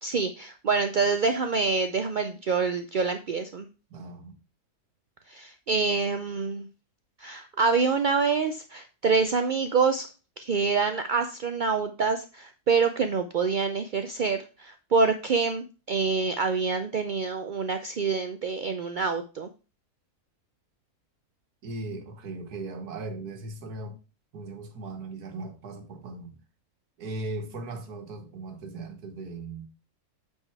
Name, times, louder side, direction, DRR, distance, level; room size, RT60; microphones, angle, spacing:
voice 1, 0.0-3.7 5.3-6.7 7.2-10.1 10.4-19.5, right 4 dB, 65° right, 0.5 m, -26 dB
voice 2, 3.9-4.4 21.6-24.0 24.3-26.4 27.0-29.7, right 2 dB, 85° right, 1.8 m, -38 dB
8.8 x 4.5 x 4.7 m
omnidirectional pair, 1.6 m